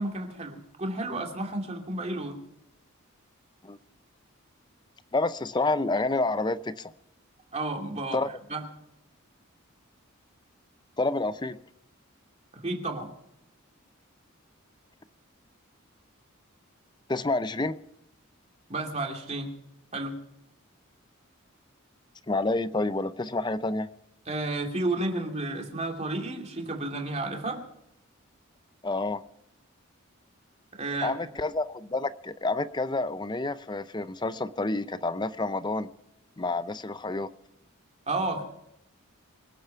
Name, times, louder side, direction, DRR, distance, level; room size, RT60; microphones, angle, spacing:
voice 1, 0.0-2.4 7.5-8.6 12.5-13.1 18.7-19.5 19.9-20.2 24.3-27.6 30.8-31.3 38.1-38.4, right 2 dB, 30° right, 2 dB, 2.7 m, -32 dB
voice 2, 5.1-6.9 8.1-8.3 11.0-11.6 17.1-17.8 22.3-23.9 28.8-29.2 31.0-35.9 36.4-37.3, left 2 dB, 20° left, 13 dB, 0.6 m, -29 dB
25.5 x 8.5 x 5.7 m, 0.79 s
head